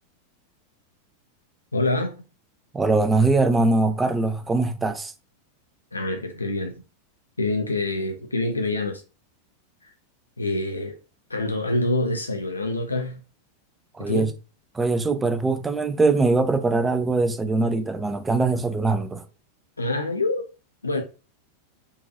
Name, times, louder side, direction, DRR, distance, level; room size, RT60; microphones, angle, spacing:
voice 1, 1.7-2.1 5.9-6.7 7.4-9.0 9.8-9.9 10.4-11.0 11.3-13.2 14.0-14.3 19.8-20.5 20.8-21.0, left 2 dB, 80° left, 0.4 m, -26 dB
voice 2, 2.7-5.1 13.9-14.3 14.7-19.2, right 3 dB, 10° right, 0.4 m, -22 dB
3.9 x 2.3 x 2.6 m
figure-of-eight pair, 90°, 0 cm